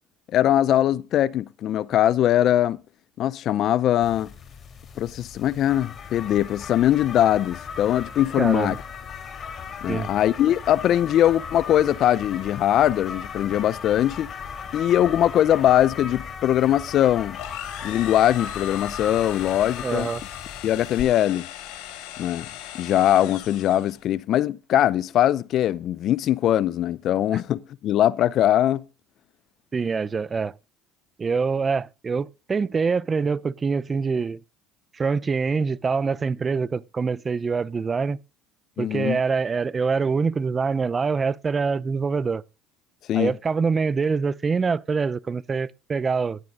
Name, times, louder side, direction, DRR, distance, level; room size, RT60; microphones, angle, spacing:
voice 1, 0.3-2.8 3.2-4.3 5.0-8.8 9.8-14.3 14.7-17.4 17.8-20.1 20.6-21.5 22.2-22.5 22.7-28.8 38.8-39.2 43.1-43.3, left 12 dB, 55° left, 0.6 m, -21 dB
sound 1, 4.0-21.0, left 6 dB, 40° left, 3.4 m, -37 dB
voice 2, 8.4-8.8 9.9-10.1 19.8-20.2 29.7-30.5 31.2-34.4 34.9-38.2 38.8-42.4 43.1-46.4, right 5 dB, 30° right, 0.6 m, -25 dB
sound 2, 17.3-24.0, left 12 dB, 75° left, 3.3 m, -39 dB
17.5 x 10.5 x 2.6 m
supercardioid pair, 85°, 0 cm